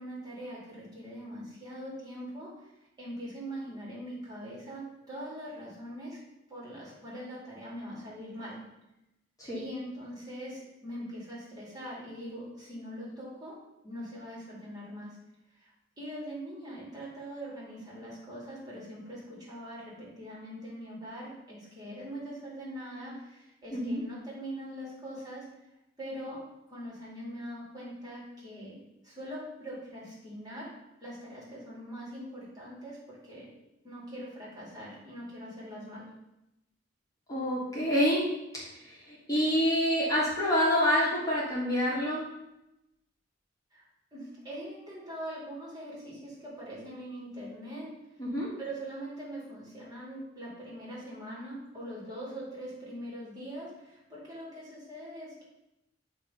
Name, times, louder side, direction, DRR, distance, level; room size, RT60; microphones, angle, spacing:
voice 1, 0.0-2.7 3.0-6.2 6.5-8.6 9.5-13.6 13.8-15.2 15.5-15.7 16.0-25.5 26.0-26.4 26.7-33.5 33.8-36.1 43.7-43.9 44.1-47.9 48.6-55.4, equal, 20° right, -6 dB, 2.3 m, -42 dB
voice 2, 23.7-24.0 37.3-38.2 38.5-42.2 48.2-48.5, equal, 20° left, -7 dB, 1.6 m, -27 dB
8.4 x 3.0 x 5.4 m, 0.90 s
head